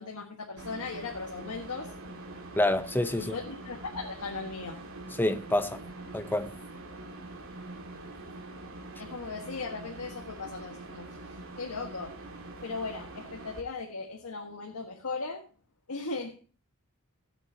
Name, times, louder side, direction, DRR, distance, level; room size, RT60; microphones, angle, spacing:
voice 1, 0.0-1.9 3.2-4.8 9.0-11.1 11.6-12.1 12.6-15.4 15.9-16.3, left 4 dB, 90° left, 1.6 m, -37 dB
sound 1, 0.6-13.6, right 2 dB, 65° right, 2.5 m, -44 dB
voice 2, 2.6-3.4 5.2-5.8 6.1-6.5, left 1 dB, 10° left, 0.8 m, -27 dB
18.0 x 8.0 x 2.8 m
head